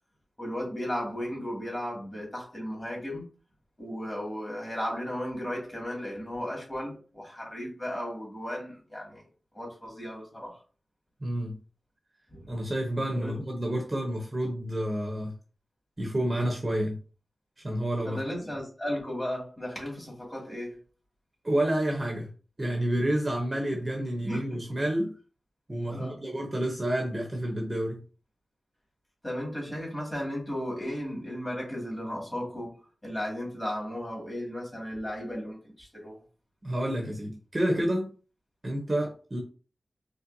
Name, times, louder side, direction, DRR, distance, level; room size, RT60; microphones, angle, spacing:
voice 1, 0.4-3.2 3.8-9.3 9.5-10.6 12.3-12.5 13.1-13.4 18.0-20.8 24.2-24.4 25.9-26.2 29.2-36.2, equal, 20° left, -3 dB, 2.1 m, -35 dB
voice 2, 11.2-11.6 12.5-15.3 16.0-17.0 17.6-18.3 21.4-22.3 22.6-25.1 25.7-28.0 36.6-38.1 38.6-39.4, right 1 dB, 25° right, 0 dB, 0.8 m, -29 dB
4.3 x 3.3 x 2.7 m, 0.37 s
wide cardioid pair, 120°, 0 cm